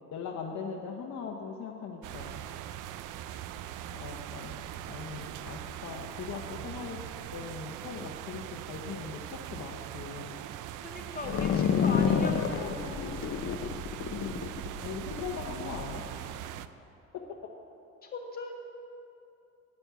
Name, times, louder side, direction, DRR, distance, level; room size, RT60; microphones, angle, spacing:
voice 1, 0.1-2.4 3.9-7.0 7.3-10.4 14.1-14.4 14.8-16.0, left 6 dB, 65° left, 1 dB, 1.0 m, -40 dB
sound 1, 2.0-16.7, right 11 dB, 90° right, 0.5 m, -41 dB
voice 2, 10.8-13.2 18.0-18.5, left 3 dB, 30° left, -1 dB, 2.1 m, -39 dB
sound 2, 11.2-15.9, left 7 dB, 45° left, 0.6 m, -29 dB
9.5 x 7.1 x 9.1 m, 2.8 s
cardioid pair, 90°, 30 cm